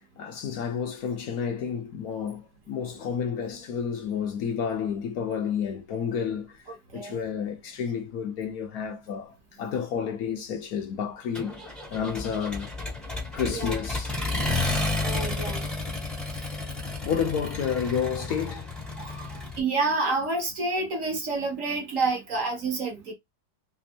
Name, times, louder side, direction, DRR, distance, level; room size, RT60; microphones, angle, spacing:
voice 1, 0.2-6.7 6.9-12.7 13.3-14.2 17.0-18.7, left 7 dB, 75° left, 0.8 m, -30 dB
Accelerating revving vroom, 11.3-19.6, left 2 dB, ahead, 0.5 m, -31 dB
voice 2, 15.0-15.7 19.0-23.1, right 3 dB, 55° right, 1.0 m, -29 dB
3.4 x 3.0 x 2.7 m
omnidirectional pair, 2.1 m